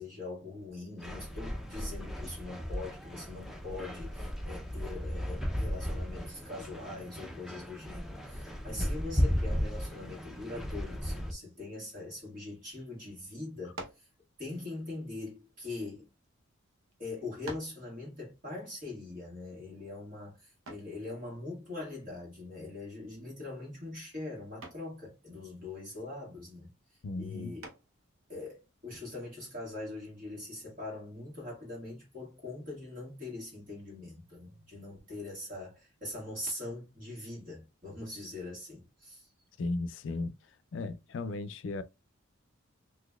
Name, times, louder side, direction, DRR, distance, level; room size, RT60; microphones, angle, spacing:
voice 1, 0.0-14.1 14.4-16.1 17.0-26.7 27.2-27.6 28.3-39.3, left 2 dB, 40° right, 1.7 m, -42 dB
sound 1, 1.0-11.3, equal, ahead, 0.4 m, -35 dB
sound 2, 13.7-14.1 15.1-16.3 16.9-17.0 17.5-17.9 20.7-21.0 22.9-23.3 23.6-24.0 24.6-24.9 27.6-28.1, right 2 dB, 75° right, 0.8 m, -46 dB
voice 2, 27.0-27.5 39.6-40.3 40.7-41.8, left 3 dB, 60° left, 0.4 m, -35 dB
4.0 x 2.6 x 2.3 m
head